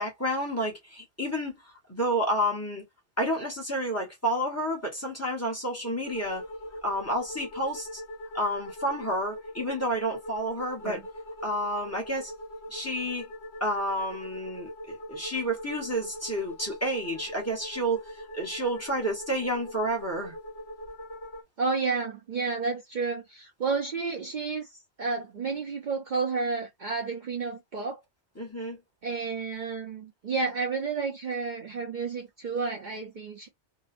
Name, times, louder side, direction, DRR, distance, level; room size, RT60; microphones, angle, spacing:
voice 1, 0.0-1.5 1.9-2.8 3.2-6.4 6.8-8.0 8.3-11.0 11.4-12.3 12.7-13.2 13.6-18.0 18.3-20.3 28.4-28.8, right 1 dB, 15° left, 1.0 m, -30 dB
sound 1, 6.0-21.4, left 1 dB, 35° left, 0.5 m, -42 dB
voice 2, 21.6-24.7 25.0-28.0 29.0-33.5, right 4 dB, 50° right, 0.7 m, -31 dB
2.8 x 2.2 x 2.5 m
omnidirectional pair, 1.1 m